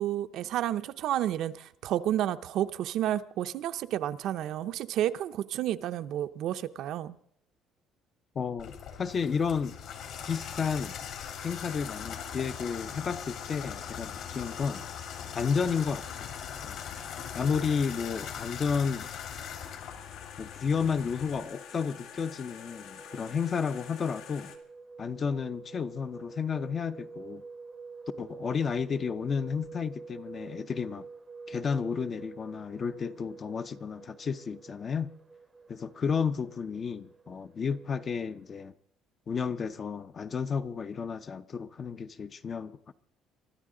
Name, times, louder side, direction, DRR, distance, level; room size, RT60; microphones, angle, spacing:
voice 1, 0.0-7.2, right 12 dB, 55° right, 0.6 m, -31 dB
voice 2, 8.4-9.8 10.3-11.0 11.4-14.9 15.3-16.1 16.6-16.8 17.3-19.1 20.4-24.5 25.0-27.4 28.2-31.1 31.5-35.1 35.7-38.7 39.3-42.9, left 6 dB, 25° left, 0.5 m, -32 dB
Water tap faucet / Bathtub (filling or washing), 8.6-21.4, left 8 dB, 60° left, 2.7 m, -41 dB
sound 1, 9.1-24.6, left 8 dB, 80° left, 2.1 m, -48 dB
sound 2, 21.5-38.7, right 4 dB, 15° right, 0.7 m, -49 dB
23.5 x 13.0 x 3.8 m
cardioid pair, 175°, 0 cm